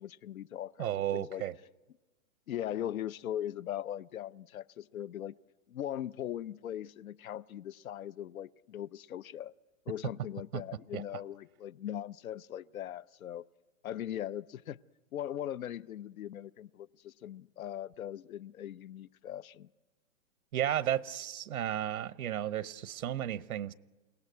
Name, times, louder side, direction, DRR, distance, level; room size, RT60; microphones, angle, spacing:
voice 1, 0.0-1.4 2.5-5.3 5.7-9.5 9.9-13.5 13.8-14.8 15.1-19.7, left 11 dB, 80° left, 0.7 m, -40 dB
voice 2, 0.8-1.5 10.5-10.6 10.9-11.0 20.5-23.7, right 11 dB, 85° right, 0.9 m, -33 dB
29.0 x 17.5 x 9.5 m
hypercardioid pair, 165°, 41 cm